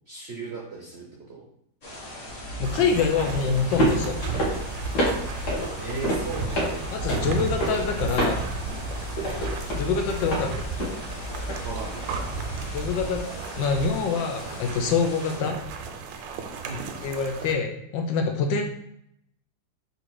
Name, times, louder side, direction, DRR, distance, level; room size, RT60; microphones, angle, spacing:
voice 1, 0.1-1.4 5.2-5.3 5.8-6.9 9.2-9.5 11.6-12.1 15.4-15.6 16.6-16.9, right 4 dB, 65° right, -3 dB, 0.6 m, -37 dB
sound 1, 1.8-15.4, left 1 dB, 30° left, 0.7 m, -40 dB
sound 2, 2.3-13.2, equal, 65° left, 1.7 m, -30 dB
voice 2, 2.6-4.2 6.9-8.5 9.8-10.7 12.7-13.2 13.6-15.5 17.0-18.6, left 5 dB, 85° left, 4 dB, 1.3 m, -25 dB
sound 3, 2.6-17.5, right 6 dB, 85° right, 1.3 m, -35 dB
3.9 x 2.6 x 4.5 m, 0.72 s
omnidirectional pair, 2.0 m